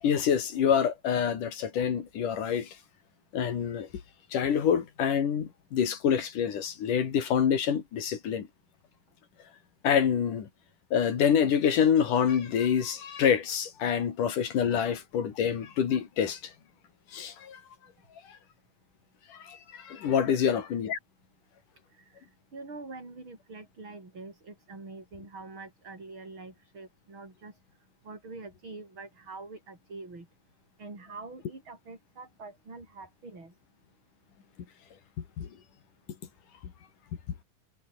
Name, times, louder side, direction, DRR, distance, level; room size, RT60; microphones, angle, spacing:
voice 1, 0.0-2.8 3.3-3.9 4.3-8.5 9.8-10.5 10.9-16.4 17.1-17.6 19.3-21.0 35.4-35.5, left 8 dB, 65° left, 4.0 m, -26 dB
voice 2, 21.9-27.6 28.0-30.3 30.8-33.5, right 3 dB, 35° right, 7.4 m, -45 dB
omnidirectional pair, 4.0 m